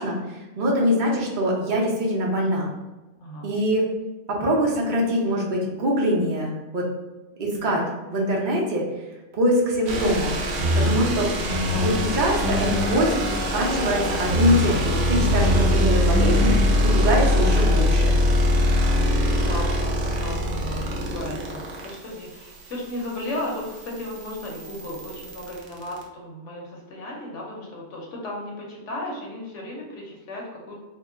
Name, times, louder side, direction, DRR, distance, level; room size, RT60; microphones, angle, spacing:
voice 1, 0.0-2.7 3.4-3.8 4.3-6.9 7.4-7.8 8.1-8.8 9.3-10.4 10.7-11.3 11.8-13.1 13.5-18.2, equal, 45° right, -2 dB, 0.8 m, -23 dB
voice 2, 3.2-3.6 7.5-7.8 11.5-12.5 12.9-13.2 15.4-15.7 18.6-30.8, left 1 dB, 80° left, -2 dB, 1.1 m, -35 dB
sound 1, 9.9-26.0, equal, 80° right, 0.9 m, -23 dB
sound 2, 10.6-18.0, left 2 dB, 55° left, 0.8 m, -27 dB
2.9 x 2.0 x 3.5 m, 1.1 s
omnidirectional pair, 1.2 m